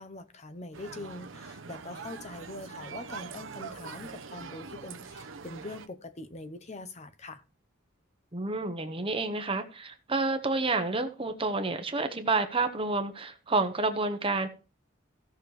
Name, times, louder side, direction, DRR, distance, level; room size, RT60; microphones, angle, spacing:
voice 1, 0.0-7.4, left 2 dB, 35° left, 0.8 m, -43 dB
sound 1, 0.7-5.9, right 5 dB, 70° right, 0.9 m, -43 dB
voice 2, 8.3-14.5, right 3 dB, 25° right, 1.0 m, -29 dB
16.0 x 6.3 x 3.3 m
head